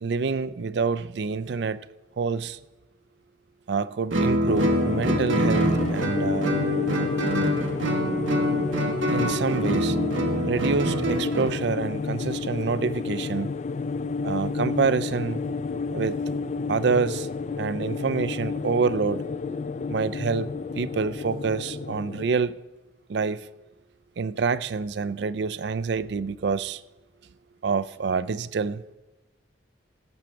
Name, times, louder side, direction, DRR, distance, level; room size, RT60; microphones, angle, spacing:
voice 1, 0.0-1.8 2.2-2.6 3.7-6.5 9.1-10.0 10.5-13.5 14.2-15.4 15.9-16.2 16.7-17.3 17.6-19.2 19.9-22.6 23.1-23.5 24.2-26.8 27.6-28.8, right 5 dB, 60° right, 0.4 m, -27 dB
Guitar, 4.1-11.6, right 1 dB, 85° right, 1.2 m, -25 dB
sound 1, 4.5-22.3, left 4 dB, 35° left, 0.3 m, -30 dB
16.5 x 7.3 x 4.5 m
head